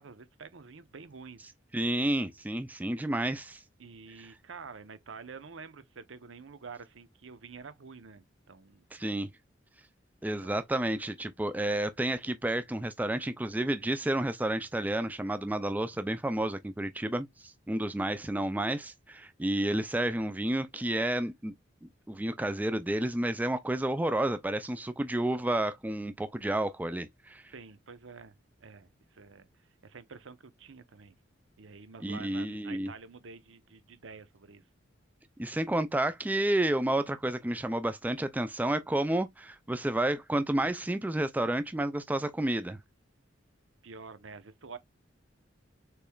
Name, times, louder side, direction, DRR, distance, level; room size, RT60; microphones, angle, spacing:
voice 1, 0.0-1.5 3.8-8.8 10.4-10.5 27.5-28.3 28.6-29.5 29.8-31.2 31.6-34.6 43.8-44.8, right 4 dB, 80° right, 0.8 m, -48 dB
voice 2, 1.7-3.6 4.2-4.3 8.9-9.3 10.2-21.5 21.8-27.4 32.0-32.9 35.4-42.8, right 1 dB, 10° right, 0.3 m, -30 dB
6.7 x 3.1 x 2.3 m
head